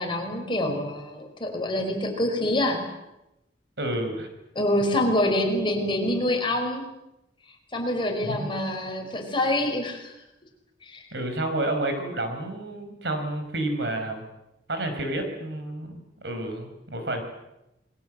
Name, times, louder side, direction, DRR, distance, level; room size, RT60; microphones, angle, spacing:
voice 1, 0.0-2.9 4.6-6.8 7.7-10.1 10.9-11.0, left 1 dB, 30° left, 3 dB, 5.3 m, -26 dB
voice 2, 3.8-4.3 8.2-8.5 11.1-14.2 14.7-17.2, right 1 dB, 70° right, 6 dB, 5.6 m, -30 dB
28.0 x 22.0 x 7.8 m, 0.91 s
head